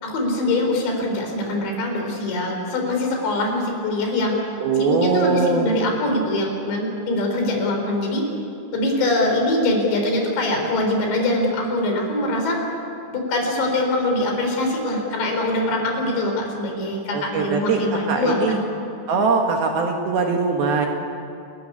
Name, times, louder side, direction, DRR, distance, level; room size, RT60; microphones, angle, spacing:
voice 1, 0.0-4.4 4.8-8.2 8.7-12.6 13.1-18.7, left 2 dB, 65° left, 2 dB, 6.2 m, -23 dB
voice 2, 4.6-5.7 17.1-17.8 18.1-18.6 19.1-20.9, right 4 dB, 60° right, 2 dB, 3.0 m, -21 dB
29.5 x 14.5 x 9.8 m, 2.6 s
omnidirectional pair, 5.6 m